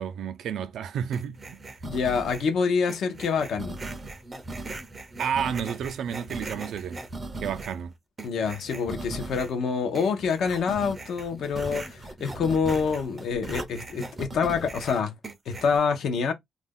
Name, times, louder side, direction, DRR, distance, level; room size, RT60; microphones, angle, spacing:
voice 1, 0.0-1.6 5.2-7.0 7.4-7.9, right 8 dB, 70° right, 0.4 m, -31 dB
sound 1, 1.1-2.5 2.9-7.8 8.2-9.6 9.9-15.8, right 2 dB, 20° right, 0.5 m, -39 dB
voice 2, 1.8-3.8 8.2-15.1 15.5-16.3, left 5 dB, 65° left, 0.7 m, -26 dB
2.4 x 2.2 x 3.5 m
cardioid pair, 170°, 0 cm